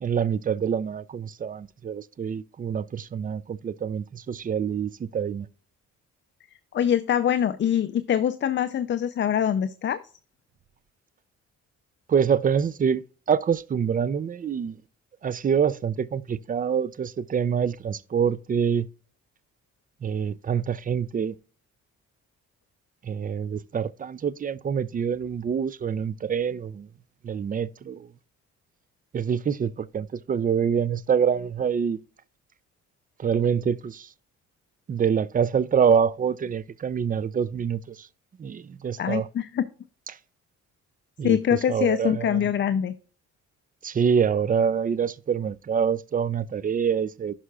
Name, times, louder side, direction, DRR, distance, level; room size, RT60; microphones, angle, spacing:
voice 1, 0.0-5.5 12.1-14.8 15.2-18.9 20.0-21.3 23.0-26.9 27.2-28.1 29.1-32.0 33.2-34.1 34.9-38.1 38.4-39.3 41.2-42.5 43.8-47.3, right 7 dB, 30° right, 0.4 m, -26 dB
voice 2, 6.7-10.0 39.0-39.7 41.2-42.9, left 9 dB, 40° left, 0.5 m, -24 dB
11.0 x 5.6 x 2.3 m
cardioid pair, 90°, 30 cm